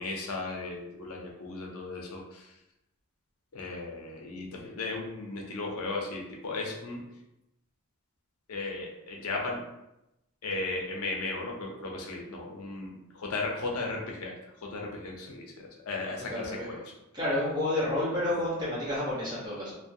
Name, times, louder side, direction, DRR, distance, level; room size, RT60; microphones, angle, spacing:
voice 1, 0.0-2.6 3.5-7.0 8.5-9.6 10.4-16.8, left 3 dB, 85° left, 0 dB, 0.5 m, -36 dB
voice 2, 16.3-16.7 17.1-19.8, left 1 dB, 20° right, -10 dB, 0.9 m, -30 dB
2.5 x 2.1 x 2.5 m, 0.90 s
head